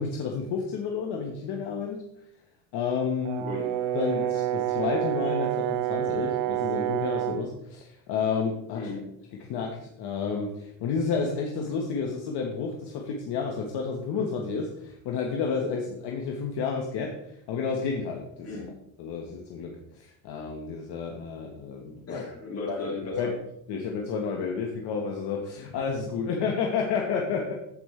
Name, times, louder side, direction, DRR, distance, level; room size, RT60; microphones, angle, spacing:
voice 1, 0.0-2.0 2.7-3.5 3.9-8.9 9.5-18.6 19.0-22.2 22.7-22.8 23.2-23.3 23.7-27.5, left 5 dB, 55° left, 1 dB, 1.4 m, -31 dB
Brass instrument, 3.2-7.5, right 13 dB, 65° right, 0.9 m, -28 dB
voice 2, 8.7-9.0 18.4-18.7 22.1-23.3, left 3 dB, 30° left, -2 dB, 3.4 m, -35 dB
15.0 x 5.3 x 3.3 m, 0.76 s
cardioid pair, 135°, 49 cm